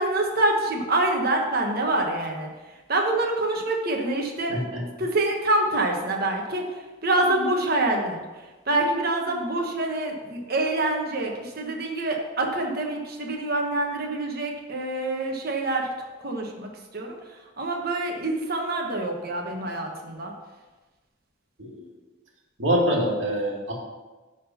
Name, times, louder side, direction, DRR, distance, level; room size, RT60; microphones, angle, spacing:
voice 1, 0.0-2.5 2.9-4.5 5.0-6.6 7.0-8.2 8.7-15.9 16.2-16.7 16.9-17.2 17.6-20.3, right 2 dB, 50° right, 1 dB, 1.4 m, -26 dB
voice 2, 4.5-4.8 21.6-21.8 22.6-23.7, equal, 70° right, -3 dB, 2.1 m, -25 dB
11.0 x 4.0 x 5.7 m, 1.2 s
head